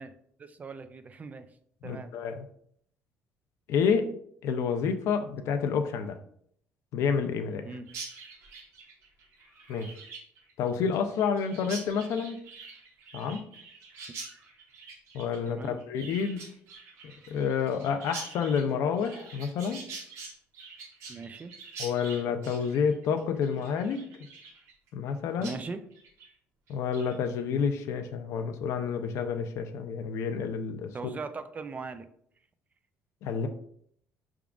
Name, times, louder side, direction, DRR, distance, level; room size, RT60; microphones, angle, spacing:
voice 1, 0.0-1.5 1.8-2.1 7.6-7.9 14.1-14.2 15.5-15.8 21.1-21.5 25.4-25.8 30.9-32.1, right 4 dB, 30° right, 10 dB, 0.4 m, -40 dB
voice 2, 1.8-2.5 3.7-4.1 4.4-6.2 6.9-7.7 9.7-9.9 10.6-12.4 13.1-13.4 15.1-16.5 17.3-19.8 21.8-24.0 24.9-25.5 26.7-31.0 33.2-33.5, left 6 dB, 70° left, 7 dB, 0.5 m, -29 dB
Chirp tweet, 7.9-25.1 25.4-25.6 25.9-26.3 26.7-27.1, right 4 dB, 70° right, 1.1 m, -45 dB
4.8 x 3.6 x 2.3 m, 0.66 s
cardioid pair, 105°, 5 cm